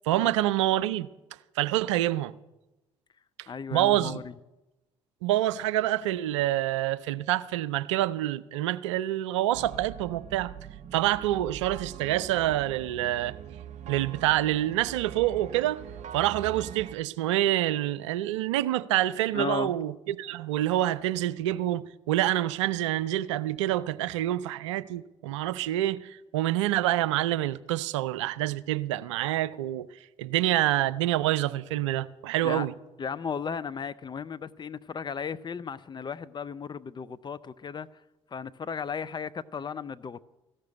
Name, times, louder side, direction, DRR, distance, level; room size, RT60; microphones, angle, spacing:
voice 1, 0.0-1.1 1.6-2.3 3.7-4.2 5.2-10.5 10.9-13.4 13.9-15.8 16.1-29.9 30.2-32.7, right 14 dB, 75° right, 0.4 m, -27 dB
voice 2, 3.5-4.3 19.3-19.8 32.4-32.7 33.0-37.9 38.3-40.2, left 6 dB, 30° left, 0.6 m, -35 dB
sound 1, 9.5-16.9, right 9 dB, 50° right, 0.8 m, -43 dB
14.0 x 6.6 x 9.6 m
figure-of-eight pair, 50°, 15 cm